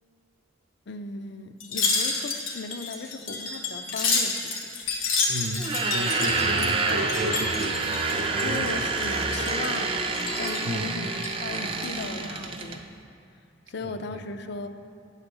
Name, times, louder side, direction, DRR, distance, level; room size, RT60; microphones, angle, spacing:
voice 1, 0.9-4.7 6.6-7.1 8.4-12.8 13.7-14.7, left 3 dB, 55° left, 8 dB, 0.5 m, -37 dB
Wind chime, 1.6-8.7 9.0-9.8 10.1-10.7 11.1-12.0 12.4-12.6, left 4 dB, 90° left, 1.3 m, -30 dB
voice 2, 5.3-8.6 10.7-11.0 13.8-14.2, right 1 dB, 70° right, 0 dB, 0.6 m, -33 dB
sound 1, 5.6-12.8, right 3 dB, 25° right, 0.4 m, -28 dB
9.6 x 4.1 x 7.0 m, 2.7 s
head